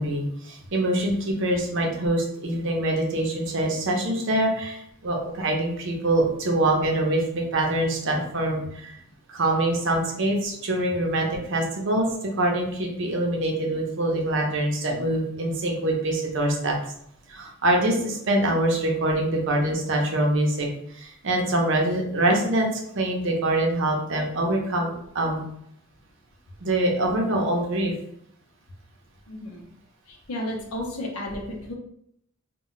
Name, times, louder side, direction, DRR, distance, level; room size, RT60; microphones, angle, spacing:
voice 1, 0.0-9.0 9.3-12.1 12.4-16.8 17.3-22.7 22.9-25.4 26.6-27.9, right 1 dB, 60° right, 1 dB, 0.6 m, -24 dB
voice 2, 29.3-29.7 30.1-31.7, left 1 dB, 75° left, 0 dB, 0.7 m, -33 dB
2.2 x 2.1 x 3.8 m, 0.72 s
head